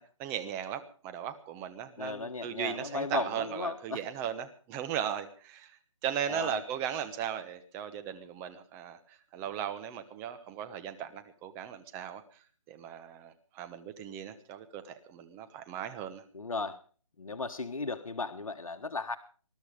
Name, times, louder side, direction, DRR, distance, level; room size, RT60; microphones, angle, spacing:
voice 1, 0.0-5.7 6.0-12.2 12.7-16.2, right 9 dB, 15° right, 9 dB, 1.1 m, -37 dB
voice 2, 2.0-4.0 6.3-6.6 16.3-16.8 17.2-19.2, left 3 dB, 85° left, 7 dB, 1.5 m, -35 dB
20.5 x 12.0 x 5.2 m, 0.42 s
hypercardioid pair, 160°, 17 cm